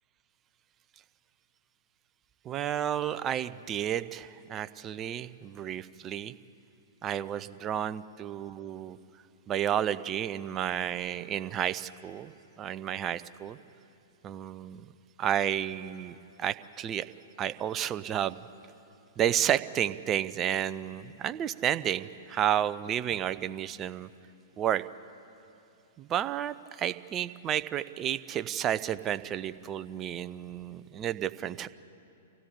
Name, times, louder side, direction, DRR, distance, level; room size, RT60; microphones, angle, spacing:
voice 1, 2.4-6.3 7.0-9.0 9.5-12.3 12.6-13.6 14.2-14.8 15.2-17.0 17.4-18.4 19.2-24.1 24.6-24.8 26.0-31.7, right 10 dB, 25° right, 13 dB, 0.6 m, -31 dB
25.0 x 16.5 x 8.3 m, 2.9 s
figure-of-eight pair, 105°, 0 cm